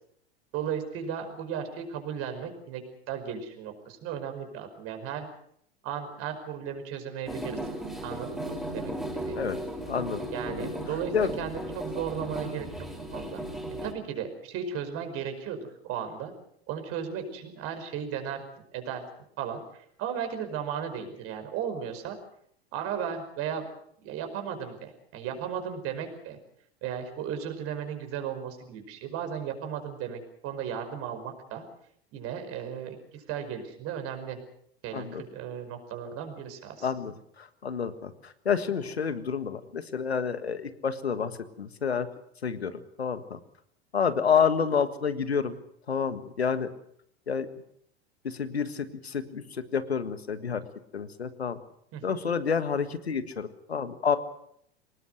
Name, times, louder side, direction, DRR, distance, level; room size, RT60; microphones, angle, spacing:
voice 1, 0.5-5.3 5.8-7.6 8.0-8.9 9.2-9.4 10.3-12.7 13.1-13.4 13.8-16.3 16.7-18.4 18.7-19.0 19.4-22.2 22.7-23.7 24.0-26.4 26.8-31.6 32.1-34.4 34.8-36.9 51.9-52.0, right 8 dB, 45° right, 7 dB, 5.3 m, -35 dB
sound 1, 7.2-13.9, right 1 dB, ahead, 5.5 m, -36 dB
voice 2, 9.9-10.3 10.6-10.8 11.1-11.3 34.9-35.2 36.8-42.1 42.4-42.7 43.0-43.4 43.9-45.6 45.9-46.7 47.3-47.5 48.2-50.6 50.9-51.6 52.0-54.2, left 6 dB, 85° left, 12 dB, 1.7 m, -29 dB
24.0 x 20.0 x 6.5 m, 0.69 s
figure-of-eight pair, 85°, 31 cm